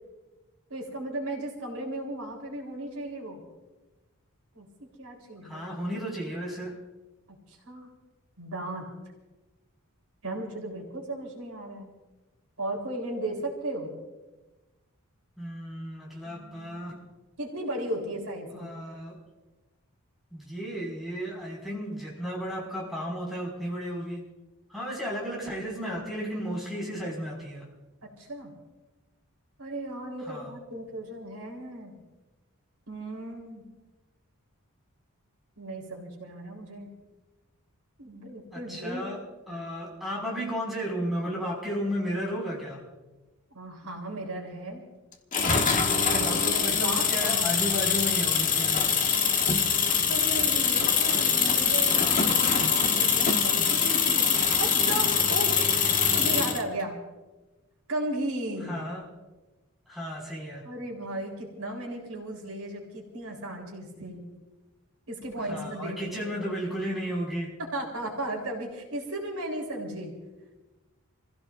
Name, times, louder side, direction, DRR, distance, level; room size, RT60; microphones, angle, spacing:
voice 1, 0.7-3.4 4.5-5.7 7.3-7.4 7.6-7.9 8.4-8.8 10.2-11.9 12.6-13.9 16.2-16.9 17.4-18.7 28.2-28.5 29.6-31.9 32.9-33.6 35.6-36.9 38.0-39.0 39.5-39.6 43.5-44.8 46.1-47.6 50.1-55.8 56.1-57.0 57.9-58.8 60.6-64.3 65.1-66.4 67.7-70.1, right 1 dB, 85° right, 1 dB, 3.8 m, -36 dB
voice 2, 5.4-6.8 15.4-17.0 18.5-19.2 20.3-24.2 24.7-27.7 30.2-30.6 38.5-39.2 39.5-42.8 46.2-49.0 58.6-59.1 59.9-60.7 65.4-67.5, equal, ahead, -4 dB, 5.8 m, -34 dB
sound 1, 45.3-56.6, left 6 dB, 35° left, 1.3 m, -24 dB
28.5 x 16.0 x 2.6 m, 1.1 s
head